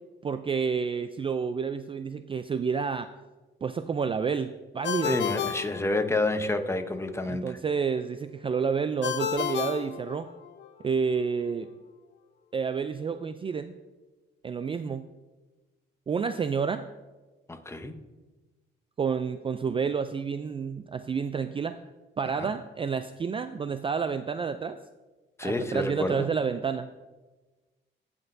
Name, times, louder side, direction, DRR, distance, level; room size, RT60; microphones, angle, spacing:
voice 1, 0.2-3.1 3.6-5.2 7.3-10.3 10.8-11.7 12.5-13.7 14.4-15.0 16.1-16.9 19.0-21.8 22.2-24.8 25.4-26.9, right 6 dB, 25° right, 10 dB, 0.3 m, -29 dB
Ringtone, 4.8-6.5 9.0-10.7, left 9 dB, 65° left, 0.8 m, -32 dB
voice 2, 5.0-7.6 17.5-18.0 22.4-22.5 25.4-26.3, left 2 dB, 15° left, 8 dB, 0.8 m, -29 dB
16.5 x 6.0 x 2.6 m, 1.2 s
cardioid pair, 90°, 20 cm